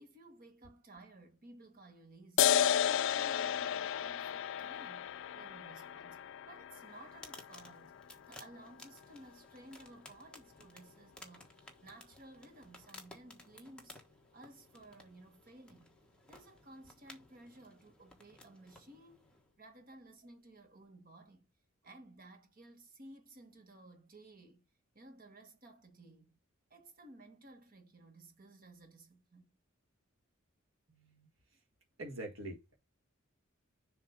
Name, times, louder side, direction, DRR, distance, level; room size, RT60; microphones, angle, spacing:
voice 1, 0.0-7.9 8.3-14.0 14.3-16.0 16.3-19.3 19.6-21.5 21.8-24.7 24.9-26.4 26.7-29.6, right 2 dB, 45° right, 1.4 m, -56 dB
sound 1, 2.4-9.4, left 9 dB, 65° left, 0.3 m, -34 dB
sound 2, 6.9-19.5, left 2 dB, 5° left, 1.2 m, -57 dB
voice 2, 30.9-31.3 32.0-32.7, right 1 dB, 70° right, 1.7 m, -45 dB
7.0 x 2.9 x 5.0 m
head